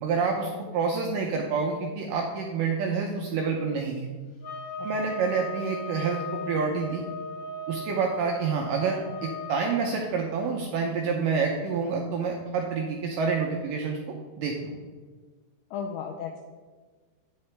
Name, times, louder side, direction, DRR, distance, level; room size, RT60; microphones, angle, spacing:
voice 1, 0.0-4.1 4.8-7.0 7.7-14.0 14.4-14.7, right 5 dB, 85° right, 1 dB, 1.9 m, -28 dB
sound 1, 4.4-9.8, left 2 dB, 55° left, 2.1 m, -38 dB
voice 2, 4.8-5.1 15.7-16.4, left 7 dB, 90° left, 2 dB, 2.0 m, -35 dB
8.8 x 5.6 x 3.2 m, 1.4 s
omnidirectional pair, 4.5 m